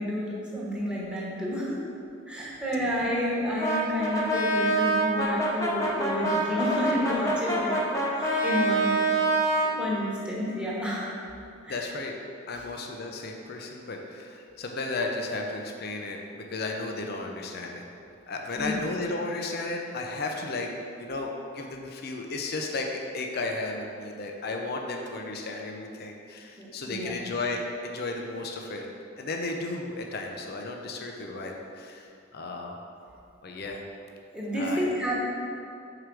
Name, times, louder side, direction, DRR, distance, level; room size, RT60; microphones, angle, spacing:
voice 1, 0.0-1.8 2.3-7.8 8.1-8.9 9.6-11.1 11.6-11.8 18.5-18.8 26.6-27.1 34.3-35.2, equal, 5° right, -6 dB, 1.2 m, -30 dB
Brass instrument, 3.6-9.8, right 2 dB, 15° left, 0.9 m, -26 dB
voice 2, 11.7-12.1 12.5-17.8 18.3-28.9 29.2-32.8 33.4-33.8 34.6-34.9, left 2 dB, 50° left, 2 dB, 0.6 m, -34 dB
4.9 x 4.6 x 6.1 m, 2.5 s
head